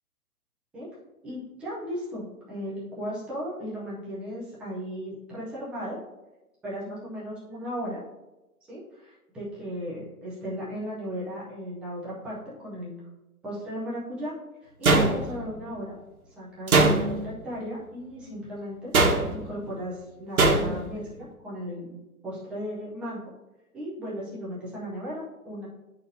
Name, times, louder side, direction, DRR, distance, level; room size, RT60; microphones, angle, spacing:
voice 1, 1.2-6.0 6.6-8.0 8.7-13.0 13.4-14.3 14.8-16.0 16.4-22.0 22.2-23.3 23.7-25.7, equal, ahead, -8 dB, 0.5 m, -36 dB
sound 1, 14.8-15.6 16.7-17.4 18.9-19.5 20.4-20.9, right 3 dB, 70° right, 1.3 m, -21 dB
10.5 x 4.1 x 2.6 m, 1.0 s
figure-of-eight pair, 125°, 44 cm